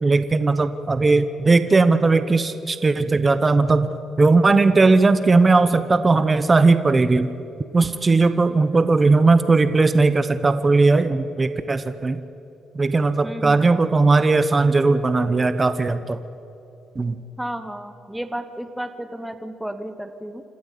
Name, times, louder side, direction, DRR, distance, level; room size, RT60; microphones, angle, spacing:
voice 1, 0.0-3.9 4.2-7.3 7.7-12.2 12.7-16.2 17.0-17.2, right 3 dB, 25° right, 11 dB, 0.9 m, -18 dB
voice 2, 13.2-13.7 17.4-20.4, right 1 dB, 5° right, 8 dB, 1.1 m, -32 dB
26.5 x 13.0 x 8.5 m, 2.9 s
cardioid pair, 90°, 0 cm